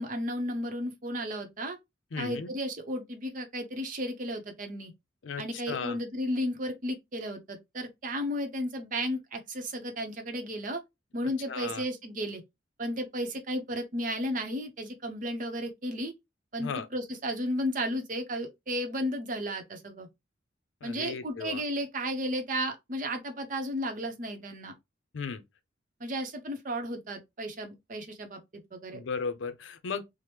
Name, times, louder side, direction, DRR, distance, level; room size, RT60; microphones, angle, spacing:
voice 1, 0.0-1.8 2.2-4.9 5.4-10.8 11.1-12.4 12.8-16.1 16.5-20.1 20.8-24.7 26.0-28.4 28.7-29.0, equal, 45° right, 0.7 m, -33 dB
voice 2, 2.1-2.5 5.2-6.0 11.5-11.8 16.6-16.9 20.8-21.6 25.1-25.4 28.9-30.0, left 5 dB, 85° left, 0.5 m, -35 dB
2.9 x 2.0 x 3.2 m
head